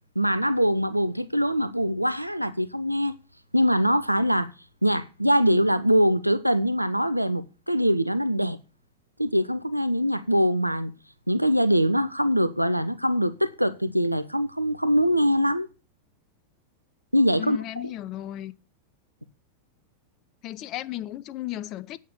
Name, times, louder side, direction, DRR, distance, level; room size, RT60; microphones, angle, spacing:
voice 1, 0.2-3.1 3.5-4.5 4.8-8.6 9.2-10.9 11.3-15.7 17.1-17.6, equal, 90° right, 0.6 m, -23 dB
voice 2, 17.4-18.5 20.4-22.0, left 13 dB, 35° left, 0.6 m, -35 dB
8.4 x 6.4 x 8.1 m
figure-of-eight pair, 90°, 0 cm